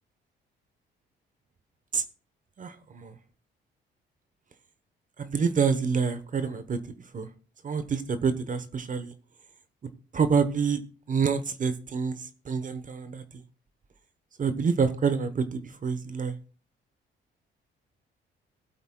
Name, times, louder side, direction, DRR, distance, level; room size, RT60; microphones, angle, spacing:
voice 1, 2.6-3.1 5.2-6.8 7.1-7.3 7.6-9.1 10.1-10.8 11.1-12.2 12.5-13.2 14.4-16.3, right 5 dB, 40° right, 11 dB, 1.1 m, -27 dB
19.0 x 8.1 x 2.3 m, 0.39 s
cardioid pair, 90°, 20 cm